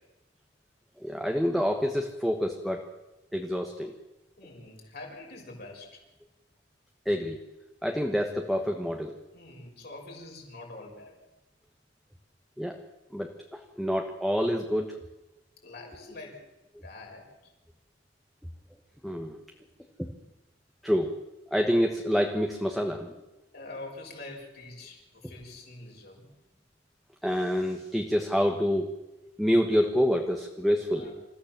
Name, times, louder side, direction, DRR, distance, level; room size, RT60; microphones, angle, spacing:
voice 1, 1.0-2.9 3.3-3.9 7.0-7.4 7.8-9.2 12.6-12.8 13.1-15.0 19.0-19.4 20.0-20.1 20.8-21.2 21.5-23.2 27.2-28.9 29.4-31.1, equal, ahead, 2 dB, 1.3 m, -27 dB
voice 2, 4.4-6.0 9.3-11.1 15.6-16.4 16.8-17.2 23.5-26.3 30.9-31.2, left 2 dB, 60° left, -1 dB, 6.3 m, -45 dB
27.0 x 14.5 x 7.4 m, 1.0 s
head